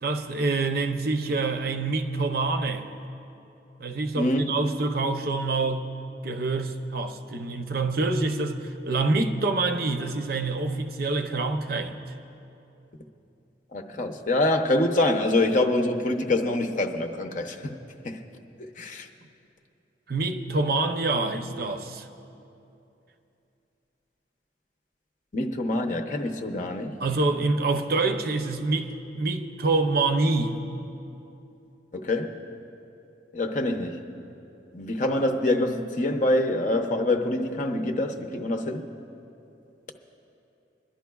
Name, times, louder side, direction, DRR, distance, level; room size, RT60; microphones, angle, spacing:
voice 1, 0.0-2.9 3.8-5.9 6.2-8.6 8.9-12.0 20.1-22.1 26.5-26.6 27.0-30.6, right 3 dB, 55° right, 0.6 m, -26 dB
voice 2, 13.7-17.8 18.0-18.2 18.8-19.1 25.3-27.0 31.9-32.4 33.3-34.0 34.7-38.8, left 1 dB, 45° left, 0.7 m, -25 dB
27.0 x 11.5 x 2.3 m
head